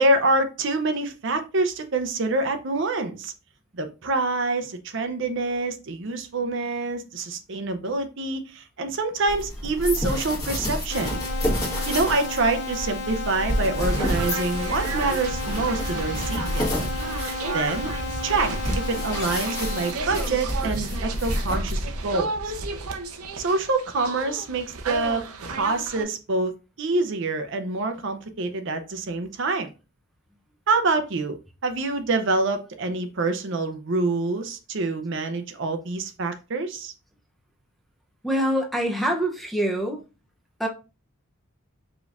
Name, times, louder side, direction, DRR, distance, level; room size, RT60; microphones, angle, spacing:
voice 1, 0.0-3.3 3.7-11.2 11.9-16.7 17.5-17.9 18.2-22.5 23.4-26.5 26.8-29.7 30.7-31.4 31.6-36.9, right 3 dB, 55° right, 0.6 m, -26 dB
sound 1, 9.3-22.0, equal, 15° left, 1.3 m, -30 dB
sound 2, 10.9-19.9, left 3 dB, 55° left, 0.7 m, -33 dB
sound 3, 13.8-26.0, right 3 dB, 90° right, 0.8 m, -33 dB
voice 2, 38.2-40.0 40.6-40.7, right 1 dB, ahead, 0.6 m, -25 dB
5.0 x 3.8 x 2.5 m
head